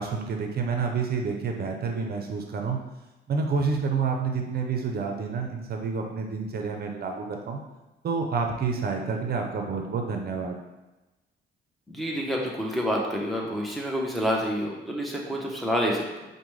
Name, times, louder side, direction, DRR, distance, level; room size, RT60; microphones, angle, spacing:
voice 1, 0.0-2.8 3.3-7.6 8.0-10.6, right 5 dB, 50° right, 3 dB, 0.6 m, -29 dB
voice 2, 11.9-16.2, equal, ahead, -2 dB, 0.8 m, -28 dB
4.9 x 2.2 x 3.1 m, 1.1 s
cardioid pair, 90°, 20 cm